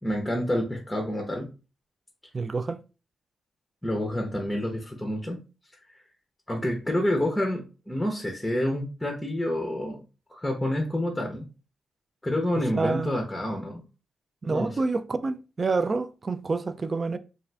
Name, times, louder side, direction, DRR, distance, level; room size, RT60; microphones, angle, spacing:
voice 1, 0.0-1.5 3.8-5.4 6.5-10.0 10.3-11.5 12.2-13.8 14.5-14.8, left 1 dB, 10° left, 0.7 m, -28 dB
voice 2, 2.3-2.8 12.7-13.1 14.4-17.2, right 3 dB, 40° right, 0.3 m, -28 dB
2.4 x 2.4 x 3.2 m
cardioid pair, 70°, 0 cm